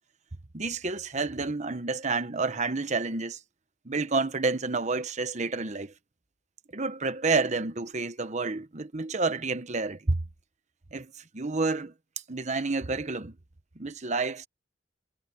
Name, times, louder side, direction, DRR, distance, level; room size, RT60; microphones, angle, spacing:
voice 1, 0.5-3.4 3.8-5.9 6.7-10.2 10.9-11.9 12.3-13.4 13.8-14.5, right 3 dB, 40° right, 1.1 m, -29 dB
head